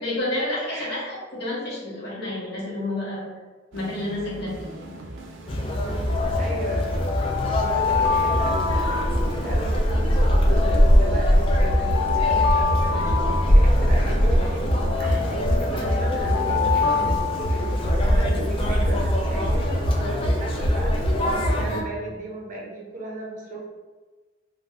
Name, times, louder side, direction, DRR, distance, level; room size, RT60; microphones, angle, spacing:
voice 1, 0.0-3.3 3.7-4.9, left 1 dB, 60° left, -7 dB, 1.1 m, -30 dB
voice 2, 0.7-1.0 5.8-6.9 7.5-23.6, right 1 dB, 45° right, -2 dB, 0.6 m, -36 dB
sound 1, 3.7-20.5, right 1 dB, 85° right, 0.4 m, -41 dB
Conversation, 5.5-21.8, equal, 30° left, 0.4 m, -22 dB
Alarm, 6.1-9.8 10.5-14.2 14.9-18.1, left 6 dB, 90° left, 0.4 m, -27 dB
2.5 x 2.4 x 3.3 m, 1.3 s
head